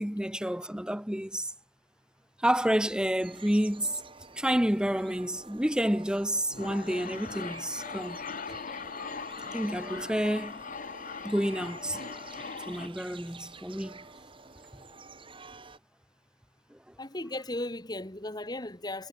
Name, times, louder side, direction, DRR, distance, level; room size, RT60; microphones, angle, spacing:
voice 1, 0.0-1.5 2.4-4.0 4.3-8.2 9.0-9.1 9.5-10.6 11.2-12.0 12.7-14.0 16.7-16.8, equal, 5° right, 0.9 m, -29 dB
sound 1, 3.2-15.8, right 4 dB, 30° right, 3.5 m, -49 dB
sound 2, 6.4-12.9, left 5 dB, 45° left, 1.0 m, -40 dB
voice 2, 17.0-19.1, left 1 dB, 20° left, 2.2 m, -36 dB
head